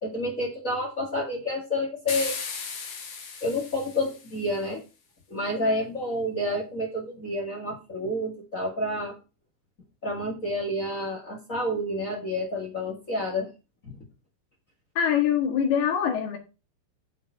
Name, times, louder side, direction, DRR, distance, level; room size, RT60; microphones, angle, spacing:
voice 1, 0.0-2.4 3.4-4.8 5.3-9.1 10.0-13.5 13.8-14.0, left 1 dB, 30° left, 1.6 m, -29 dB
sound 1, 2.1-4.5, left 5 dB, 60° left, 1.2 m, -36 dB
voice 2, 15.0-16.4, left 8 dB, 80° left, 3.4 m, -24 dB
7.3 x 7.0 x 5.7 m
omnidirectional pair, 4.5 m